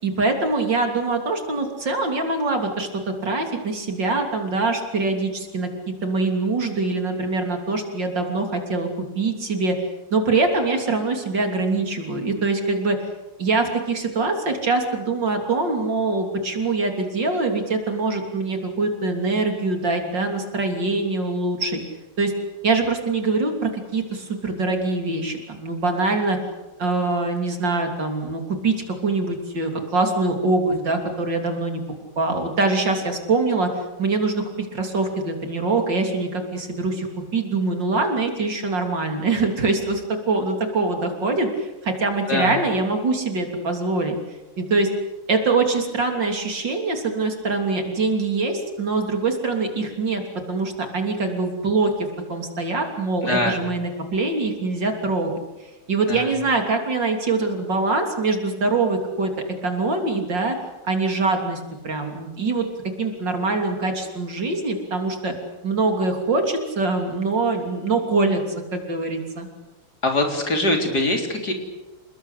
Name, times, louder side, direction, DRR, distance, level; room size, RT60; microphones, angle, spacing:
voice 1, 0.0-9.8 10.1-13.0 13.4-21.8 22.2-22.3 22.6-26.4 26.8-28.7 29.0-31.8 32.2-33.7 34.0-37.1 37.3-44.2 44.6-44.9 45.3-55.3 55.9-59.3 59.6-60.6 60.8-62.7 63.0-65.3 65.6-68.4 68.7-69.5, right 3 dB, 55° right, 4 dB, 3.9 m, -23 dB
voice 2, 53.2-53.6 56.1-56.3 70.0-71.5, left 2 dB, 45° left, 3 dB, 4.4 m, -22 dB
29.0 x 20.5 x 8.4 m, 1.1 s
omnidirectional pair, 2.3 m